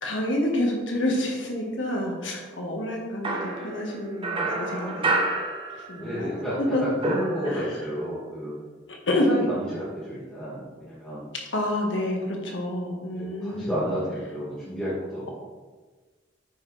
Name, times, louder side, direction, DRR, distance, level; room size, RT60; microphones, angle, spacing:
voice 1, 0.0-5.0 5.9-6.8 7.5-7.7 8.9-9.4 11.5-13.8, left 1 dB, 80° left, 0 dB, 1.6 m, -28 dB
sound 1, 3.2-6.3 6.5-8.0, right 2 dB, 30° right, 1.0 m, -29 dB
voice 2, 6.0-8.5 9.2-11.2 13.1-15.3, equal, 5° left, -12 dB, 2.1 m, -31 dB
9.1 x 6.3 x 3.4 m, 1.3 s
head